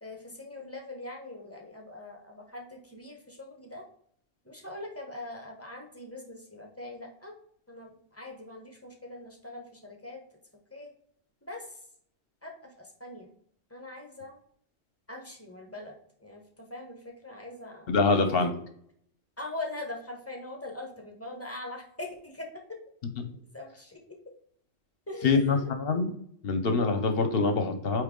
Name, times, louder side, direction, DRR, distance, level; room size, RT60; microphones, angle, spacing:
voice 1, 0.0-3.8 4.4-7.3 7.7-10.2 10.7-10.9 11.4-11.8 12.4-13.3 13.7-14.4 15.1-15.9 16.2-18.0 19.4-22.5 23.5-24.0 25.1-25.7, left 2 dB, 15° left, 2 dB, 1.0 m, -42 dB
voice 2, 17.9-18.5 25.2-26.1 26.4-28.0, left 4 dB, 60° left, 8 dB, 0.9 m, -25 dB
8.4 x 3.1 x 3.8 m, 0.66 s
omnidirectional pair, 1.2 m